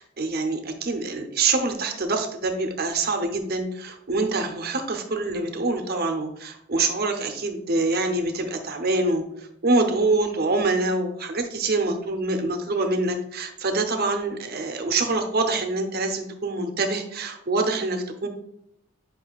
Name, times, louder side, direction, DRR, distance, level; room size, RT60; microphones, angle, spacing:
voice 1, 0.0-9.2 9.6-18.3, right 3 dB, 45° right, 5 dB, 0.8 m, -25 dB
7.7 x 5.3 x 2.3 m, 0.82 s
head